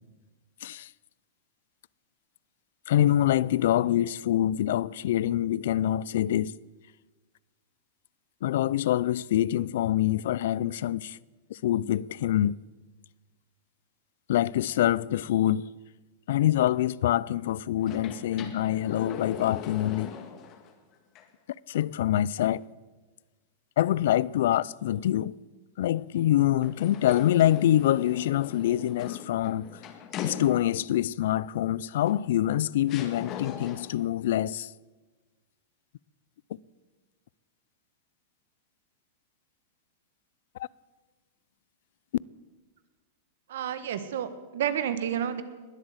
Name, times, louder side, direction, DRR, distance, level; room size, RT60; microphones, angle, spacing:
voice 1, 2.9-6.5 8.4-11.2 11.5-12.6 14.3-15.7 16.3-20.1 21.7-22.6 23.8-25.4 25.8-29.7 30.2-34.7 40.6-40.7, left 12 dB, 70° left, 0.4 m, -25 dB
sound 1, 17.8-20.7 21.2-21.3 26.6-31.0 32.1-32.2 32.9-34.1, left 8 dB, 40° left, 1.8 m, -40 dB
voice 2, 43.5-45.4, right 9 dB, 75° right, 1.5 m, -30 dB
20.5 x 8.0 x 7.8 m
hypercardioid pair, 130°, 0 cm